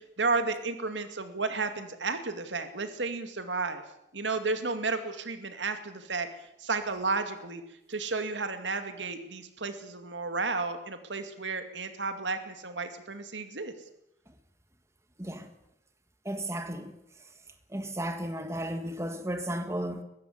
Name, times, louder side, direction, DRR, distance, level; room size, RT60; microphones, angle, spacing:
voice 1, 0.0-3.8 4.1-7.6 7.9-13.7, right 3 dB, 90° right, 2.3 m, -32 dB
voice 2, 15.2-15.5 16.3-16.9 17.7-20.0, right 1 dB, 15° right, 1.7 m, -34 dB
22.0 x 15.0 x 8.1 m
head